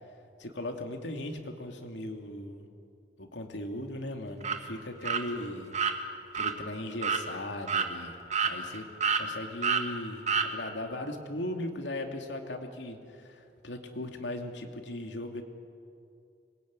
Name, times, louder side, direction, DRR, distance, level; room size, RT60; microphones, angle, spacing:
voice 1, 0.4-2.7 3.2-5.8 6.3-8.9 9.2-15.4, left 1 dB, 80° left, 4 dB, 2.7 m, -38 dB
sound 1, 4.4-4.6 5.0-5.2 5.7-5.9 6.3-6.5 7.0-7.2 7.7-7.9 8.3-8.8 9.0-9.2 9.6-9.8 10.3-10.5, right 6 dB, 40° right, 1.8 m, -27 dB
26.0 x 21.5 x 9.7 m, 2.6 s
head